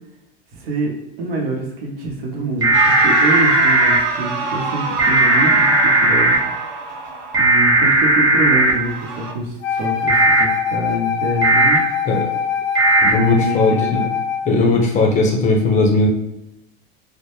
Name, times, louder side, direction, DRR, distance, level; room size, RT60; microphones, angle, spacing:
voice 1, 0.5-6.4 7.4-11.8 13.0-13.9, right 2 dB, 85° right, -1 dB, 0.8 m, -25 dB
sound 1, 2.6-4.0 5.0-6.4 7.3-8.7 10.1-10.4 11.4-11.8 12.7-13.1, right 2 dB, 15° right, 0.8 m, -15 dB
sound 2, 2.7-7.9 8.7-9.3, right 4 dB, 40° right, 0.5 m, -27 dB
Wind instrument woodwind instrument, 9.6-14.5, left 8 dB, 70° left, 0.6 m, -23 dB
voice 2, 13.0-14.1 14.4-16.1, left 3 dB, 25° left, 1 dB, 0.5 m, -17 dB
2.2 x 2.1 x 2.9 m, 0.90 s
supercardioid pair, 115°, 29 cm